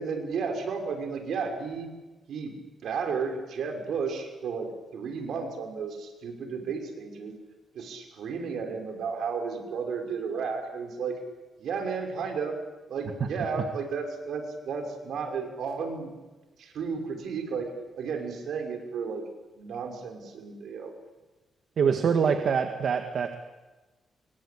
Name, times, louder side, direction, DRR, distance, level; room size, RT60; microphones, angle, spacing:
voice 1, 0.0-1.9 2.3-7.4 7.7-11.2 11.6-12.6 12.9-16.1 16.6-19.3 19.5-20.9 21.8-21.9 22.2-22.3, right 5 dB, 80° right, 4 dB, 5.8 m, -33 dB
voice 2, 21.8-23.4, right 6 dB, 65° right, 6 dB, 1.9 m, -25 dB
28.0 x 24.0 x 8.7 m, 1.2 s
cardioid pair, 110°, 0 cm